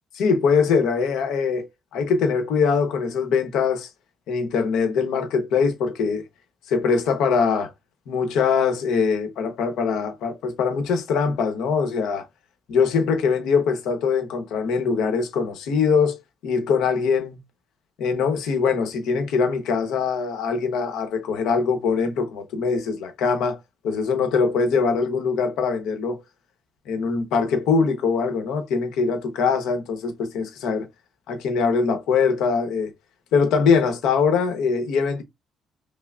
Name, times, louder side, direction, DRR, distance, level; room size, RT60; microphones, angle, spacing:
voice 1, 0.1-1.7 1.9-3.9 4.3-6.2 6.7-7.7 8.1-12.3 12.7-16.2 16.4-17.4 18.0-23.6 23.8-26.2 26.9-30.9 31.3-32.9 33.3-35.2, left 5 dB, 80° left, 0.9 m, -22 dB
5.6 x 2.0 x 2.4 m
cardioid pair, 140°, 0 cm